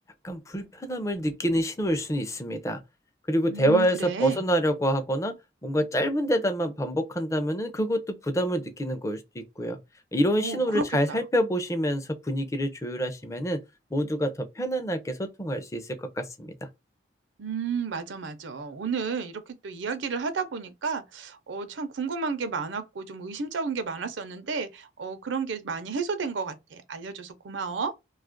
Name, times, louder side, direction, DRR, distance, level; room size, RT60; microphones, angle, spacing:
voice 1, 0.2-2.8 3.3-5.3 5.6-9.8 10.1-13.6 13.9-16.7, equal, 15° left, 0.4 m, -27 dB
voice 2, 3.5-4.5 10.4-11.2 17.4-27.9, right 5 dB, 85° right, 0.6 m, -32 dB
2.8 x 2.4 x 3.7 m
head